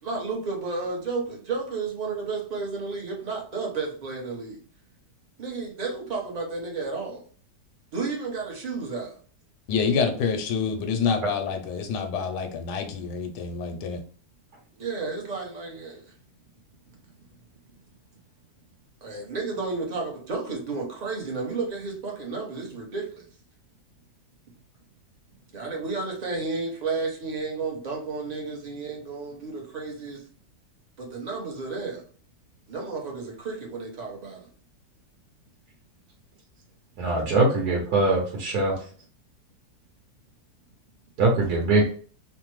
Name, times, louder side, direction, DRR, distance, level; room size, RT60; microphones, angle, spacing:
voice 1, 0.0-4.6 5.4-7.2 7.9-9.2 14.8-16.1 19.0-23.3 25.5-30.3 31.0-32.1 32.7-34.5, right 4 dB, 45° right, 0.5 m, -32 dB
voice 2, 9.7-14.0, left 5 dB, 90° left, 1.2 m, -27 dB
voice 3, 37.0-38.8 41.2-41.9, right 2 dB, 70° right, 1.3 m, -22 dB
3.2 x 2.1 x 3.0 m
omnidirectional pair, 1.8 m